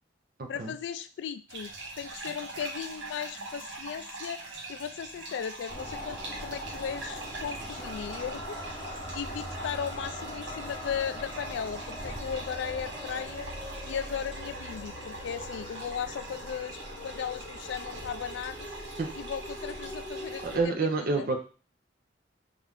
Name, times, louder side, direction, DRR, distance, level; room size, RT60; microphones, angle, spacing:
voice 1, 0.5-4.4 4.7-13.5 13.8-18.7 19.1-20.9 21.2-21.3, left 7 dB, 75° left, 12 dB, 0.3 m, -37 dB
sound 1, 1.5-20.6, right 2 dB, 85° right, 0.8 m, -43 dB
sound 2, 5.7-20.7, equal, 25° left, 0.8 m, -41 dB
voice 2, 20.4-21.4, right 3 dB, 55° right, 4 dB, 0.6 m, -27 dB
4.2 x 2.4 x 3.5 m, 0.37 s
head